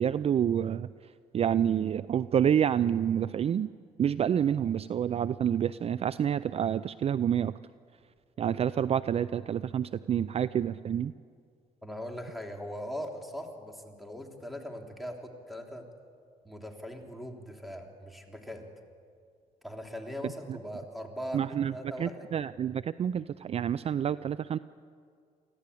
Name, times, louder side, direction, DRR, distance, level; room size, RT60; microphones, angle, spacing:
voice 1, 0.0-3.7 4.0-7.5 8.4-11.1 21.3-24.6, right 9 dB, 45° right, 16 dB, 0.4 m, -28 dB
voice 2, 11.8-15.9 16.4-18.6 19.6-22.3, equal, ahead, 2 dB, 3.5 m, -40 dB
24.5 x 15.5 x 8.5 m, 2.2 s
supercardioid pair, 80°, 15 cm